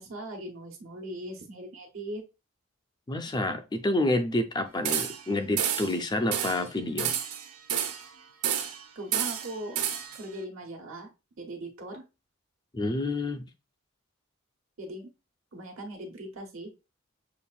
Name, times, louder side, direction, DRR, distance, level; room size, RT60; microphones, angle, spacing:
voice 1, 0.0-2.2 8.9-9.8 10.1-11.1 11.4-12.0 14.8-15.1 15.5-16.7, right 1 dB, 65° right, 1 dB, 1.2 m, -39 dB
voice 2, 3.1-7.1 12.7-13.4, left 1 dB, 20° left, 8 dB, 0.4 m, -28 dB
sound 1, 4.9-5.3 5.6-6.0 6.3-6.6 7.0-8.1 8.4-8.8 9.1-10.2, right 9 dB, 90° right, 0.6 m, -30 dB
7.0 x 2.5 x 2.3 m, 0.27 s
head